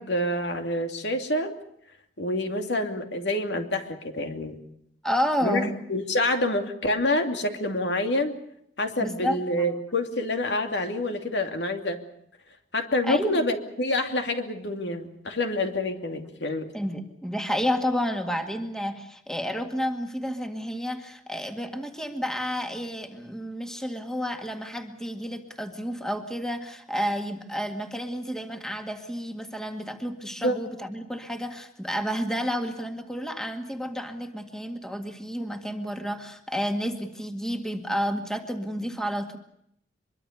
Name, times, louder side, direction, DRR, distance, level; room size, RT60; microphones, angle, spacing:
voice 1, 0.0-1.5 2.2-4.6 5.4-8.3 8.8-12.0 12.7-16.7 30.4-30.5, left 1 dB, 65° left, 5 dB, 2.8 m, -27 dB
voice 2, 5.0-5.7 9.0-9.8 13.0-13.4 16.7-39.4, equal, 5° left, 5 dB, 2.0 m, -30 dB
24.5 x 23.0 x 6.8 m, 0.73 s
head